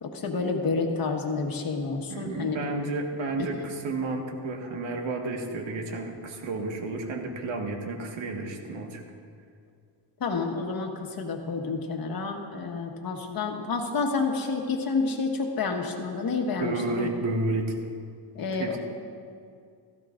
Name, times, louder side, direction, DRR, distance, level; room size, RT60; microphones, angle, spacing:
voice 1, 0.0-2.6 3.4-3.6 10.2-17.1 18.3-18.8, left 4 dB, 45° left, 2 dB, 1.6 m, -29 dB
voice 2, 2.1-9.0 16.5-17.7 18.6-18.8, right 2 dB, 75° right, 2 dB, 1.8 m, -31 dB
16.0 x 15.0 x 2.6 m, 2.3 s
cardioid pair, 115°, 47 cm